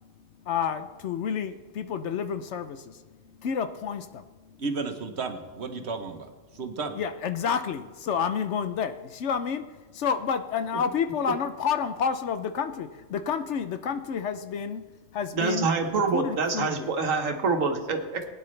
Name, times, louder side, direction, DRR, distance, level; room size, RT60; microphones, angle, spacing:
voice 1, 0.5-2.8 3.4-4.0 7.0-9.6 10.0-14.8 15.1-15.7 16.1-16.9, left 7 dB, 65° left, 0.9 m, -29 dB
voice 2, 4.6-7.0, right 4 dB, 60° right, 1.3 m, -33 dB
voice 3, 15.3-18.3, right 4 dB, 80° right, 1.6 m, -26 dB
20.5 x 9.6 x 3.3 m
omnidirectional pair, 1.3 m